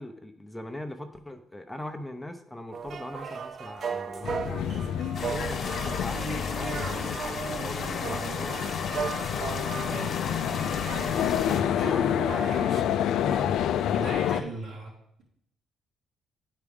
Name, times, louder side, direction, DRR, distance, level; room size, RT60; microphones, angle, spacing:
voice 1, 0.0-8.6 11.1-14.6, left 1 dB, 10° left, 6 dB, 0.6 m, -41 dB
sound 1, 2.7-12.8, right 6 dB, 50° right, 0.4 m, -37 dB
sound 2, 4.2-14.4, left 9 dB, 80° left, 0.3 m, -29 dB
sound 3, 5.1-11.6, left 4 dB, 55° left, 1.1 m, -35 dB
voice 2, 13.9-14.9, right 2 dB, 85° right, -9 dB, 2.8 m, -37 dB
9.6 x 4.7 x 3.5 m, 0.73 s
cardioid pair, 90°, 0 cm